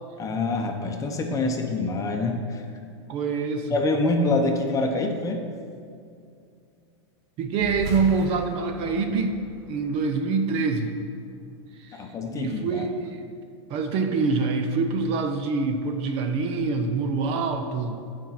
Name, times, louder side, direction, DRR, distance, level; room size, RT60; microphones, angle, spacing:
voice 1, 0.2-2.6 3.7-5.4 11.9-12.9, left 2 dB, 20° left, 3 dB, 0.9 m, -26 dB
voice 2, 3.1-3.8 7.4-9.4 9.7-10.9 11.8-12.0 12.3-13.2 13.7-18.0, right 4 dB, 40° right, 6 dB, 0.7 m, -25 dB
sound 1, 7.5-12.4, right 2 dB, 65° right, 1.6 m, -40 dB
9.0 x 4.5 x 5.8 m, 2.3 s
hypercardioid pair, 110°, 15 cm